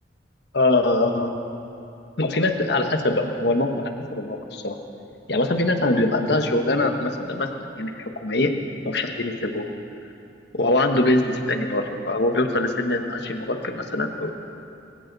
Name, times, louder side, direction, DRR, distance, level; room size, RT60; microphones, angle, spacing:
voice 1, 0.5-1.3 2.2-4.8 5.3-7.5 7.8-8.5 8.8-9.7 10.5-14.3, left 2 dB, 55° left, 5 dB, 1.2 m, -23 dB
22.0 x 16.0 x 4.0 m, 2.7 s
head